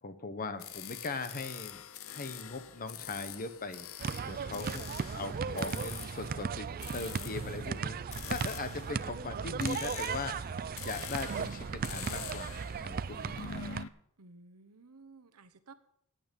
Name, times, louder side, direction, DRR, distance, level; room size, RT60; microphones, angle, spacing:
voice 1, 0.0-1.8 2.1-4.9 5.1-13.6, left 3 dB, 40° left, 10 dB, 1.1 m, -40 dB
sound 1, 0.6-13.9, left 9 dB, 65° left, 0.7 m, -46 dB
sound 2, 4.0-13.8, right 6 dB, 40° right, 0.4 m, -37 dB
voice 2, 14.2-15.7, right 3 dB, 80° right, 11 dB, 1.1 m, -55 dB
14.5 x 9.2 x 5.3 m, 0.72 s
head